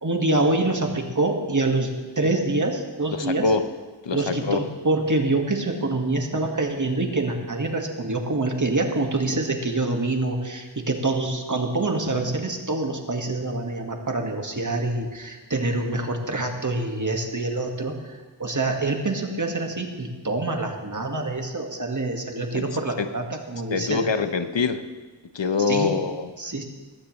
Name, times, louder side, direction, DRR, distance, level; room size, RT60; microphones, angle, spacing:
voice 1, 0.0-3.5 4.1-24.0 25.7-25.9 26.4-26.6, right 2 dB, 40° right, 3 dB, 1.8 m, -26 dB
voice 2, 3.1-3.6 4.0-4.6 22.5-23.1 23.7-24.8 25.3-26.3, left 4 dB, 70° left, 9 dB, 1.0 m, -25 dB
20.0 x 15.5 x 3.2 m, 1.3 s
wide cardioid pair, 70°, 46 cm